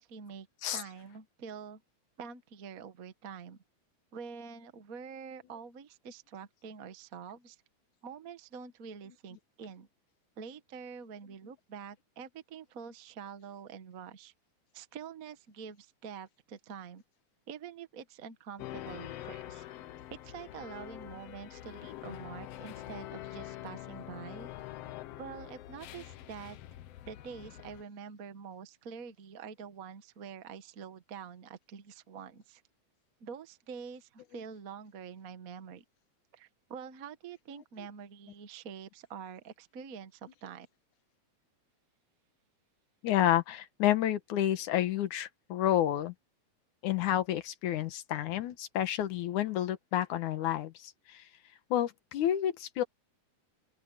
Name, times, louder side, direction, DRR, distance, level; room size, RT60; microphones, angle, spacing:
voice 1, 0.0-0.5 0.7-1.8 2.2-3.6 4.1-7.6 8.0-9.9 10.4-14.3 14.7-17.0 17.5-19.6 20.1-24.5 25.2-26.6 27.0-32.6 33.2-35.8 36.3-40.7, right 6 dB, 45° right, 1.2 m, -46 dB
sound 1, 18.6-27.8, left 13 dB, 65° left, 1.7 m, -45 dB
voice 2, 43.0-46.1 46.8-51.2 51.7-52.8, left 12 dB, 85° left, 2.7 m, -30 dB
open air
omnidirectional pair, 3.4 m